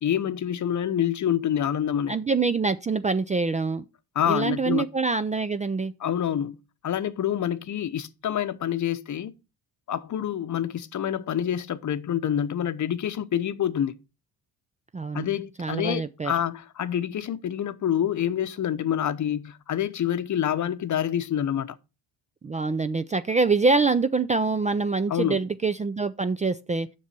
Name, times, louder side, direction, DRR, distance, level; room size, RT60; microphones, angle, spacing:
voice 1, 0.0-2.2 4.1-4.9 6.0-6.6 6.8-9.3 9.9-13.9 15.1-21.8 25.1-25.4, left 10 dB, 45° left, 0.8 m, -27 dB
voice 2, 2.1-3.8 4.3-5.9 14.9-15.3 15.6-16.3 22.4-26.9, right 4 dB, 20° right, 0.4 m, -25 dB
7.1 x 6.2 x 5.8 m
supercardioid pair, 80°, 40 cm